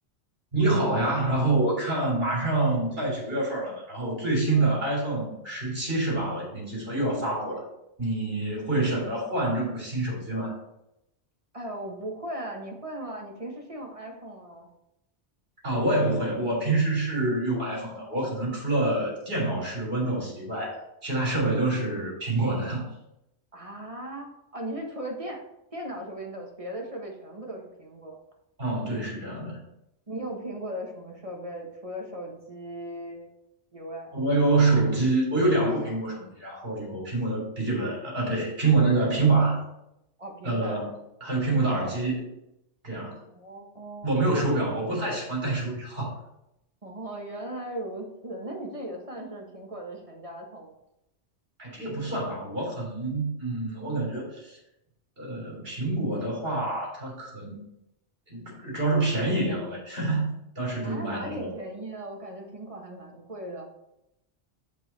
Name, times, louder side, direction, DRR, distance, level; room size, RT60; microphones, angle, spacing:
voice 1, 0.5-7.6 8.0-10.6 15.6-22.9 28.6-29.6 34.1-39.6 40.4-40.9 41.2-42.2 42.8-43.2 44.0-46.1 51.6-54.6 55.2-57.6 58.3-61.5, right 2 dB, 55° right, -3 dB, 3.7 m, -26 dB
voice 2, 11.5-14.7 23.5-25.4 25.7-28.2 30.1-33.3 33.7-34.1 40.2-40.9 43.3-44.4 46.8-50.8 60.8-63.6, right 1 dB, 30° right, 0 dB, 1.5 m, -38 dB
7.5 x 5.4 x 4.3 m, 0.84 s
omnidirectional pair, 1.2 m